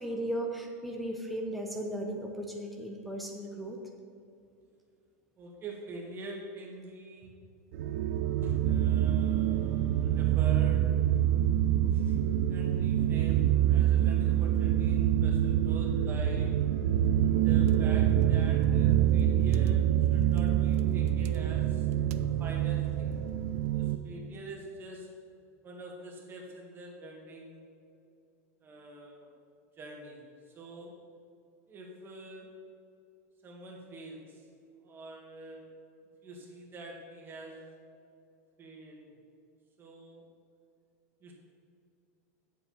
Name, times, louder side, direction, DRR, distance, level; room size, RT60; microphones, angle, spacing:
voice 1, 0.0-3.8, right 1 dB, ahead, 0 dB, 0.9 m, -36 dB
voice 2, 5.4-7.3 8.4-11.0 11.9-12.2 12.5-16.6 17.4-23.2 23.7-25.1 25.6-27.7 28.6-29.3 29.8-30.2 30.5-31.1 31.7-32.6 33.4-34.4 34.8-35.7 36.2-37.7 38.6-39.1 39.8-40.2 41.2-41.3, right 2 dB, 25° right, 0 dB, 2.0 m, -45 dB
sound 1, 7.7-23.9, right 11 dB, 70° right, 0.6 m, -26 dB
8.2 x 7.8 x 5.8 m, 2.6 s
supercardioid pair, 140°, 8 cm